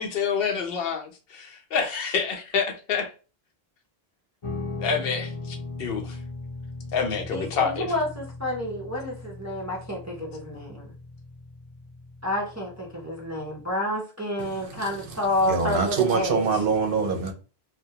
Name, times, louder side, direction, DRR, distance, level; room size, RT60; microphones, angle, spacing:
voice 1, 0.0-3.1 4.8-6.2 6.9-7.9, left 6 dB, 70° left, 0.8 m, -28 dB
Guitar, 4.4-13.7, left 3 dB, 40° left, 0.5 m, -39 dB
voice 2, 7.3-10.9 12.2-16.5, left 1 dB, 25° right, 0.4 m, -29 dB
voice 3, 15.5-17.3, right 5 dB, 65° right, 0.7 m, -24 dB
2.2 x 2.1 x 2.7 m
omnidirectional pair, 1.0 m